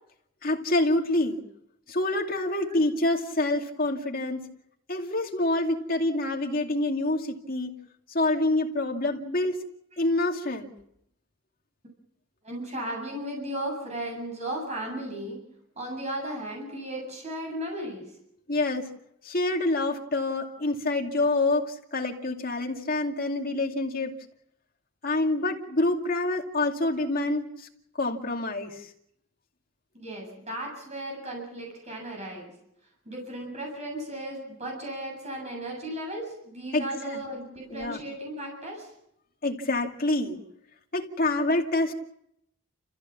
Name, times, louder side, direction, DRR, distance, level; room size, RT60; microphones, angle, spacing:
voice 1, 0.4-1.4 1.9-4.4 4.9-7.7 8.1-9.6 10.0-10.7 18.5-18.9 19.3-24.1 25.0-27.5 28.0-28.7 36.7-36.9 37.7-38.0 39.4-40.4 40.9-41.9, left 2 dB, 45° left, 2 dB, 2.5 m, -26 dB
voice 2, 12.4-15.4 15.8-18.1 29.9-32.5 33.1-38.9, right 1 dB, 35° right, 0 dB, 7.6 m, -35 dB
30.0 x 15.0 x 7.3 m, 0.76 s
head